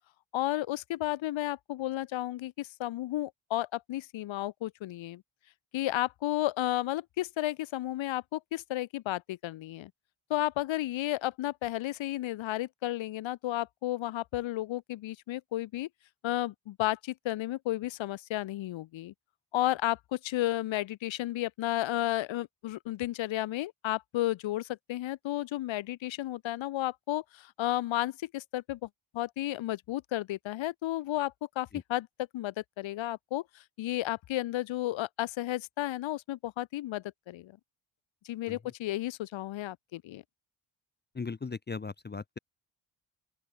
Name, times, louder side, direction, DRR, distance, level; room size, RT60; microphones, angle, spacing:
voice 1, 0.3-5.2 5.7-9.9 10.3-15.9 16.2-19.1 19.5-28.9 29.1-32.1 32.3-37.6 38.2-40.2, left 15 dB, 65° left, 0.5 m, -33 dB
voice 2, 41.1-42.4, left 4 dB, 20° left, 0.6 m, -38 dB
open air
wide cardioid pair, 160°, 50 cm